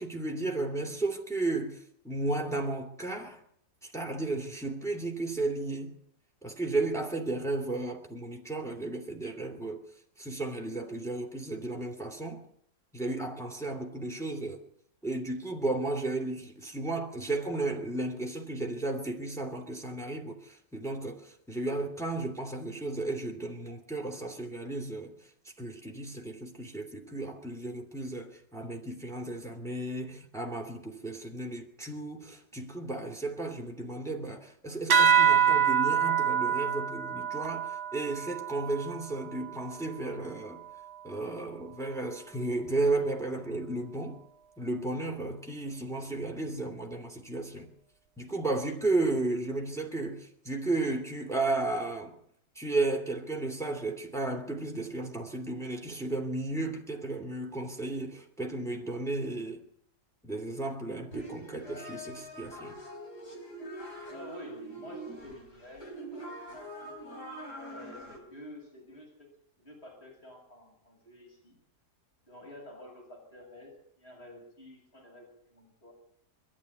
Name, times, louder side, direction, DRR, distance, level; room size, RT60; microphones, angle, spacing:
voice 1, 0.0-3.4 3.8-6.0 6.4-9.8 10.2-12.4 12.9-14.6 15.0-25.1 25.6-40.6 41.0-44.2 44.6-47.7 48.2-52.1 52.5-59.6 60.2-62.8, right 2 dB, ahead, 2.8 m, -34 dB
sound 1, 34.9-39.8, right 8 dB, 70° right, 1.6 m, -26 dB
sound 2, 61.1-68.2, right 1 dB, 80° left, 5.0 m, -44 dB
voice 2, 64.1-66.9 67.7-69.3 69.6-71.6 72.2-75.9, equal, 40° left, 8.3 m, -49 dB
22.5 x 13.5 x 9.4 m
omnidirectional pair, 1.7 m